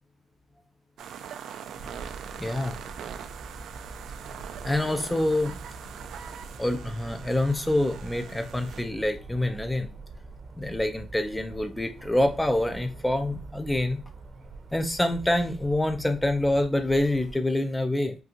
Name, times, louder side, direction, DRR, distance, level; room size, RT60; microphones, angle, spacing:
sound 1, 1.0-8.8, right 8 dB, 70° right, 0.3 m, -42 dB
sound 2, 1.7-17.4, right 3 dB, 45° right, 0.7 m, -44 dB
voice 1, 2.4-2.7 4.6-5.6 6.6-9.9 10.6-14.0 14.7-18.2, left 1 dB, 10° left, 0.4 m, -26 dB
3.6 x 2.4 x 2.8 m
cardioid pair, 90°, 0 cm